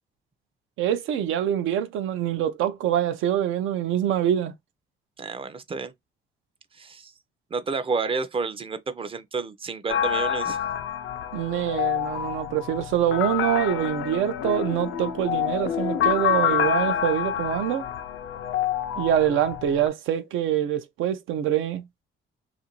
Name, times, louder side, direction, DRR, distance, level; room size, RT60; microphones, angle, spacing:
voice 1, 0.8-4.5 11.3-17.9 19.0-21.8, right 10 dB, 85° right, 0.5 m, -25 dB
voice 2, 5.2-5.9 6.7-7.1 7.5-10.6, right 4 dB, 30° right, 0.4 m, -30 dB
sound 1, 9.9-19.9, left 10 dB, 80° left, 0.4 m, -27 dB
2.5 x 2.5 x 2.9 m
cardioid pair, 90°, 20 cm